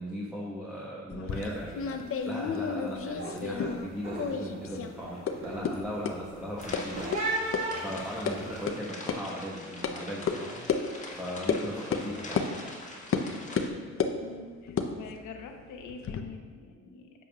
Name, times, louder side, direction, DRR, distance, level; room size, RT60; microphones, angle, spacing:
voice 1, 0.0-12.4, equal, 5° right, -5 dB, 1.2 m, -38 dB
sound 1, 1.1-3.9 4.2-4.9 5.3-5.4 5.6-5.7 6.0-6.1 6.7-6.8 7.1-7.2 7.5-7.6 8.0-8.3 8.7-8.8 9.1-9.2 9.8-9.9 10.3-10.4 10.7-10.8 11.5-11.6 11.9-12.1 12.4-12.5 13.1-13.3 13.6-14.2 14.7-16.2, left 6 dB, 45° left, 0.7 m, -31 dB
sound 2, 1.3-1.6 1.8-2.3 2.7-8.6, right 2 dB, 65° right, 1.7 m, -37 dB
sound 3, 6.6-13.7, left 2 dB, 25° left, 1.6 m, -44 dB
voice 2, 14.2-17.1, left 4 dB, 80° left, 3 dB, 1.0 m, -45 dB
10.0 x 7.3 x 2.4 m, 1.6 s
cardioid pair, 90°, 30 cm